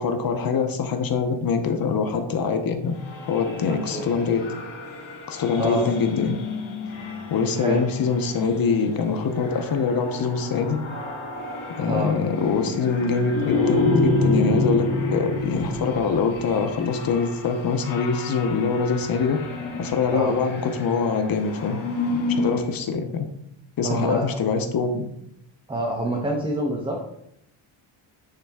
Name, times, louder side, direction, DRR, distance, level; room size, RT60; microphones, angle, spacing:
voice 1, 0.0-3.0 3.3-4.4 5.3-6.4 7.3-10.8 11.8-19.4 19.8-21.8 22.1-23.3 23.8-25.1, left 5 dB, 50° left, 6 dB, 0.7 m, -24 dB
sound 1, 2.9-22.7, left 2 dB, 90° left, 2.0 m, -29 dB
voice 2, 23.8-24.4 25.7-27.0, right 1 dB, 10° right, 0 dB, 0.7 m, -26 dB
8.9 x 4.2 x 3.5 m, 0.76 s
wide cardioid pair, 165°, 46 cm